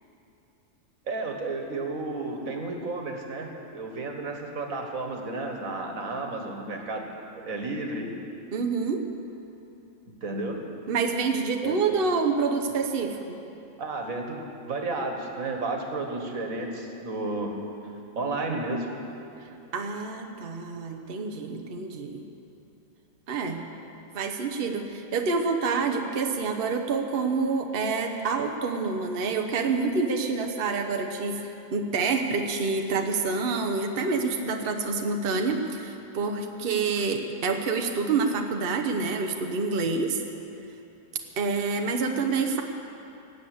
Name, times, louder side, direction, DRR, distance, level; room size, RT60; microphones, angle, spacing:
voice 1, 1.1-7.1 7.4-8.1 10.2-10.7 11.6-11.8 13.8-17.6 18.2-18.9, right 2 dB, 80° right, 3 dB, 1.9 m, -32 dB
voice 2, 8.5-9.1 10.9-13.4 19.7-22.2 23.3-23.7 24.1-31.4 31.7-40.2 41.4-42.6, right 4 dB, 45° right, 4 dB, 1.0 m, -27 dB
19.0 x 7.9 x 8.4 m, 2.8 s
omnidirectional pair, 1.4 m